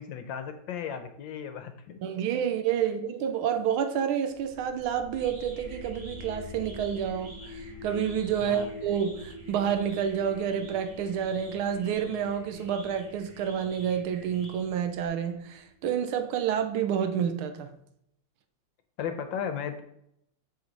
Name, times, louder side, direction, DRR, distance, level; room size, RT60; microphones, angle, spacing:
voice 1, 0.0-2.0 8.4-8.7 19.0-19.8, left 7 dB, 70° left, 1.3 m, -35 dB
voice 2, 2.0-17.8, right 8 dB, 80° right, 1.6 m, -29 dB
sound 1, 4.3-16.1, left 3 dB, 5° left, 1.8 m, -46 dB
sound 2, 4.7-15.1, equal, 50° right, 3.0 m, -50 dB
7.7 x 5.1 x 4.0 m
omnidirectional pair, 2.4 m